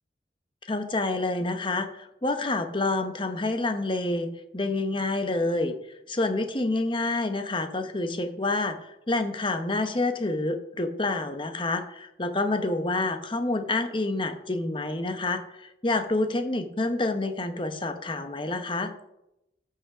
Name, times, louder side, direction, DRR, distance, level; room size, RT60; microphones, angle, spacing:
voice 1, 0.7-5.8 6.1-18.9, left 2 dB, 25° left, 8 dB, 0.9 m, -28 dB
14.0 x 5.8 x 4.9 m, 0.87 s
head